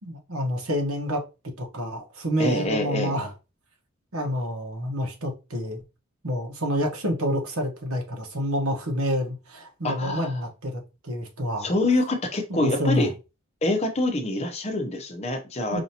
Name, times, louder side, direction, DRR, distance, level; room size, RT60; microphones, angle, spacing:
voice 1, 0.0-1.2 1.6-3.3 4.1-5.8 6.2-11.7 12.5-13.1 15.7-15.8, equal, 80° right, 1.2 m, -28 dB
voice 2, 2.4-3.2 9.8-10.4 11.6-13.1 13.6-15.8, left 2 dB, 30° left, 0.7 m, -25 dB
5.0 x 2.7 x 2.8 m
head